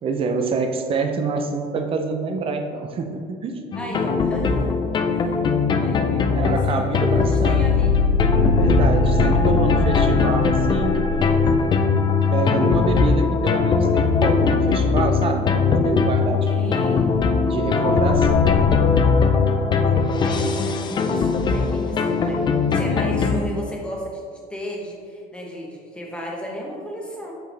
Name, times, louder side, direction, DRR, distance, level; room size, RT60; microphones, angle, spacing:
voice 1, 0.0-3.6 6.3-7.7 8.5-11.3 12.3-16.8 17.5-18.5, right 4 dB, 30° right, 5 dB, 0.5 m, -26 dB
sound 1, 3.7-23.4, left 4 dB, 25° left, 0.4 m, -19 dB
voice 2, 3.7-4.8 5.1-5.4 5.8-7.9 16.4-17.1 20.1-24.2 24.5-27.3, equal, 5° left, -3 dB, 1.1 m, -34 dB
7.7 x 4.7 x 3.3 m, 2.1 s
cardioid pair, 155°, 18 cm